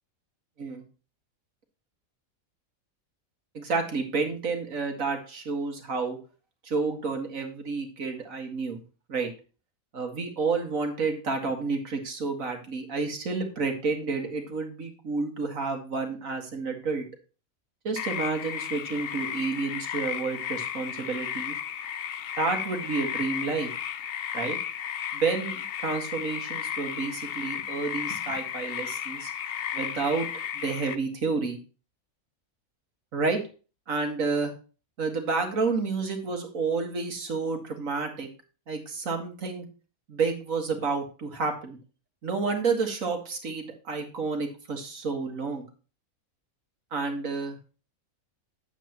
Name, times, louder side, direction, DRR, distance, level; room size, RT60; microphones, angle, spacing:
voice 1, 3.5-6.2 6.6-8.8 9.1-9.3 9.9-17.1 17.8-21.6 22.4-23.7 24.3-24.6 25.1-29.3 29.7-30.3 30.5-31.6 33.1-33.4 33.9-34.5 35.0-38.3 38.7-39.7 40.1-41.8 42.2-45.7 46.9-47.6, right 4 dB, 70° right, 4 dB, 2.2 m, -30 dB
sound 1, 18.0-31.0, left 9 dB, 55° left, 0.7 m, -34 dB
10.0 x 8.2 x 3.0 m, 0.35 s
omnidirectional pair, 1.5 m